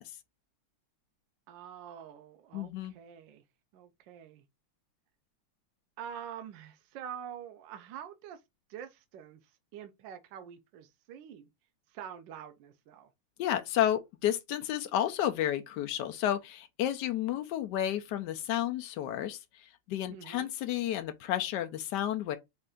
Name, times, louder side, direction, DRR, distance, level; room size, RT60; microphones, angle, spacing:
voice 1, 1.5-3.4 3.7-4.4 6.0-8.4 8.7-11.5 11.9-13.1 20.1-20.5, right 9 dB, 75° right, 1.1 m, -46 dB
voice 2, 2.5-2.9 13.4-22.4, left 11 dB, 90° left, 0.9 m, -31 dB
5.4 x 2.5 x 3.5 m
omnidirectional pair, 2.4 m